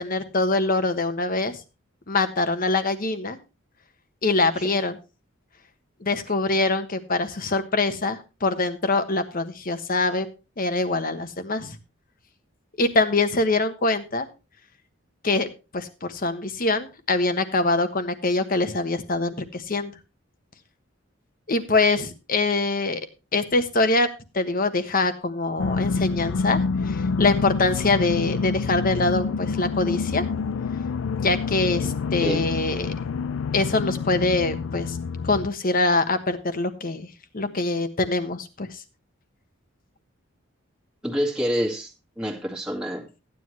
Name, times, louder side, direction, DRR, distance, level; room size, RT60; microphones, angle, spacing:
voice 1, 0.0-1.6 2.1-3.4 4.2-5.0 6.0-10.3 10.6-11.8 12.8-14.3 15.2-19.9 21.5-23.0 23.3-24.1 24.3-30.2 31.2-32.9 33.5-35.0 35.2-37.1 37.3-38.8, left 3 dB, 45° left, 1.3 m, -24 dB
sound 1, 25.6-35.5, left 5 dB, 75° left, 0.4 m, -27 dB
voice 2, 41.0-41.9 42.2-43.1, equal, 5° right, 1.9 m, -27 dB
14.5 x 9.7 x 3.1 m
head